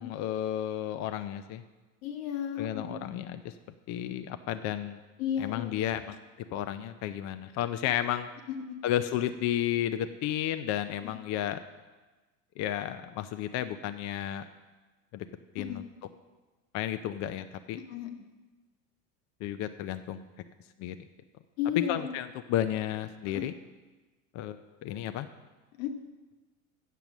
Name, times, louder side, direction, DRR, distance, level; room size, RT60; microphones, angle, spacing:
voice 1, 0.0-1.6 2.6-3.5 3.9-5.0 5.4-6.2 6.5-8.3 8.8-11.6 12.6-14.5 15.1-15.3 15.5-15.8 16.7-17.8 19.4-20.2 20.8-21.0 21.9-23.5 24.3-24.6 24.8-25.3, left 11 dB, 45° left, 10 dB, 0.5 m, -32 dB
voice 2, 2.0-2.9 5.2-5.9 8.5-8.8 11.0-11.1 15.6-15.8 17.7-18.1 21.6-22.1 23.3-23.4 25.8-25.9, left 9 dB, 75° left, 5 dB, 1.4 m, -34 dB
9.2 x 6.8 x 6.1 m, 1.2 s
supercardioid pair, 110°, 41 cm